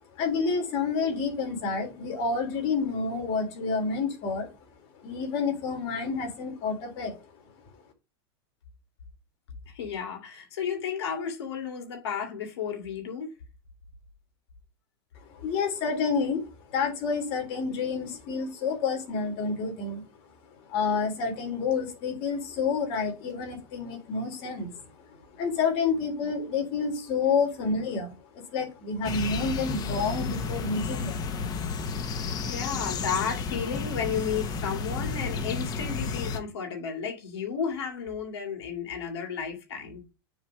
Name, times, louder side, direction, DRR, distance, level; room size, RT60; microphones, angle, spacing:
voice 1, 0.1-4.5 5.0-7.1 15.3-16.4 16.7-20.0 20.6-24.8 25.1-31.3 31.9-32.0, left 5 dB, 50° left, 3.1 m, -29 dB
voice 2, 9.7-13.3 32.5-40.0, left 7 dB, 85° left, 2.4 m, -33 dB
sound 1, 29.0-36.4, left 5 dB, 30° left, 1.1 m, -32 dB
7.1 x 3.5 x 6.2 m
supercardioid pair, 135°, 13 cm